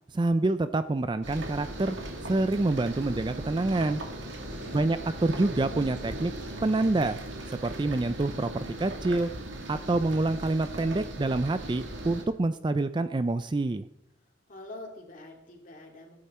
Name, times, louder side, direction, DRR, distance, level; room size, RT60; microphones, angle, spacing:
voice 1, 0.1-2.0 2.2-4.0 4.7-6.3 6.6-7.2 7.6-9.3 9.7-13.9, right 2 dB, 25° right, 11 dB, 0.4 m, -27 dB
sound 1, 1.2-12.2, right 1 dB, 70° right, 2.2 m, -38 dB
voice 2, 4.2-4.9 14.5-16.2, left 2 dB, 40° left, 1 dB, 2.8 m, -46 dB
17.5 x 10.5 x 4.3 m, 0.85 s
head